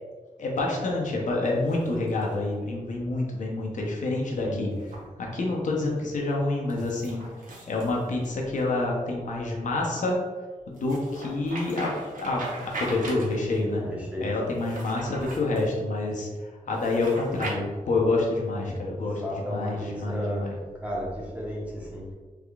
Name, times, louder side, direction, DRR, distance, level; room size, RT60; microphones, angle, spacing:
voice 1, 0.4-4.7 5.2-7.2 7.7-10.2 10.7-11.9 12.2-13.8 14.2-20.6, left 2 dB, 65° left, -1 dB, 0.6 m, -27 dB
sound 1, 1.5-2.5 4.7-5.0 6.7-8.6 10.7-13.6 14.5-15.7 16.7-17.6, right 2 dB, 80° right, 0.7 m, -40 dB
voice 2, 4.4-4.7 13.8-14.4 19.0-20.5 20.8-22.1, equal, 10° right, -5 dB, 0.8 m, -34 dB
3.5 x 3.3 x 2.3 m, 1.4 s
wide cardioid pair, 145°, 14 cm